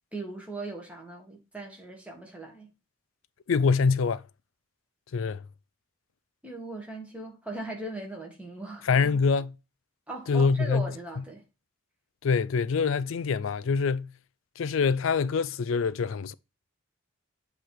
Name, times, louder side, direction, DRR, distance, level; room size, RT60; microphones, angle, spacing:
voice 1, 0.1-2.7 6.4-9.0 10.1-11.4, right 2 dB, 5° right, 1.8 m, -39 dB
voice 2, 3.5-4.2 5.1-5.4 8.8-9.5 10.3-10.9 12.2-14.1 14.6-16.3, left 5 dB, 70° left, 0.4 m, -25 dB
7.8 x 3.3 x 4.5 m
head